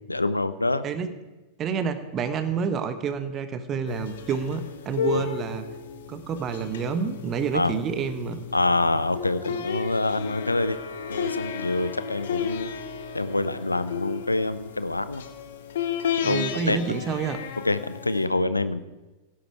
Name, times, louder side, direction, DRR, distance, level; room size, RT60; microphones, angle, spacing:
voice 1, 0.1-0.8 5.1-5.2 7.5-7.7 8.5-10.8 11.1-12.7 13.1-15.2 16.2-16.8 17.6-18.8, left 2 dB, 85° left, 14 dB, 0.7 m, -26 dB
voice 2, 1.6-5.6 6.1-8.4 9.5-9.6 16.2-17.4, right 6 dB, 30° right, 10 dB, 1.3 m, -28 dB
sound 1, 3.9-18.3, left 7 dB, 60° left, 1.2 m, -33 dB
17.0 x 11.0 x 4.8 m, 1.1 s
figure-of-eight pair, 90°, 0 cm